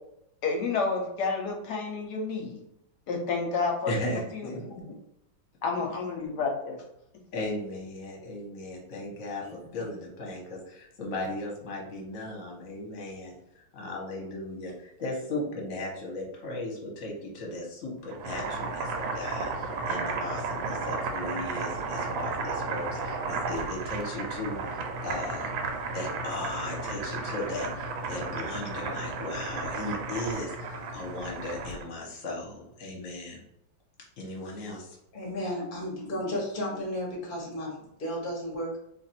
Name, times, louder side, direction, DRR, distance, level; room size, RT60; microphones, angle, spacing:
voice 1, 0.4-2.6 3.1-4.0 4.3-4.5 4.8-4.9 5.6-6.8, left 4 dB, 65° left, 1 dB, 1.3 m, -30 dB
voice 2, 3.9-4.9 7.3-13.4 13.7-25.5 25.9-33.4 34.2-35.0 35.4-35.5, left 2 dB, 50° left, -1 dB, 1.3 m, -37 dB
voice 3, 9.4-9.9 35.1-38.8, equal, 30° left, -2 dB, 1.1 m, -34 dB
Boiling, 18.0-31.9, right 4 dB, 90° right, 1.4 m, -33 dB
3.1 x 2.5 x 4.2 m, 0.82 s
omnidirectional pair, 2.1 m